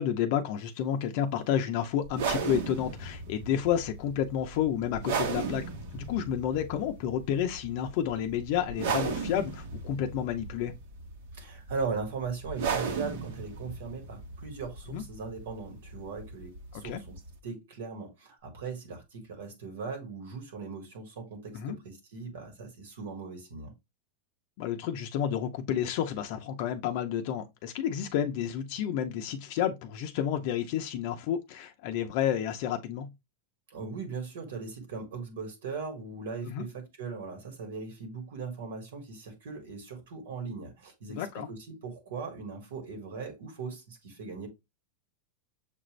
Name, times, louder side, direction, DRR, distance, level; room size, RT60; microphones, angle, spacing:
voice 1, 0.0-5.6 5.9-10.7 14.9-15.0 16.7-17.0 21.5-21.8 24.6-33.1 36.4-36.6 41.1-41.5, left 9 dB, 50° left, 0.6 m, -30 dB
sound 1, 2.1-17.4, right 5 dB, 65° right, 1.1 m, -36 dB
voice 2, 11.3-23.7 33.7-44.5, right 5 dB, 85° right, 1.7 m, -39 dB
6.7 x 2.5 x 3.1 m
supercardioid pair, 160°, 0 cm